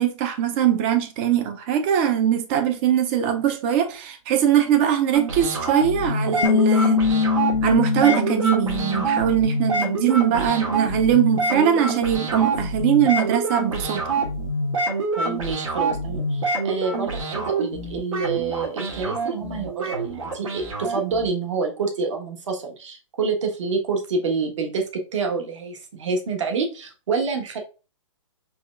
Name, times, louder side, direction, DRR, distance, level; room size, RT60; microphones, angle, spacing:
voice 1, 0.0-7.0 7.6-14.2, right 9 dB, 20° right, 0.4 m, -21 dB
sound 1, 5.1-21.3, right 2 dB, 85° right, 2.1 m, -26 dB
Bass guitar, 6.4-12.7, left 5 dB, 60° left, 0.6 m, -25 dB
voice 2, 15.2-27.6, right 4 dB, 65° right, 1.3 m, -27 dB
4.8 x 3.1 x 2.4 m
hypercardioid pair, 160°, 17 cm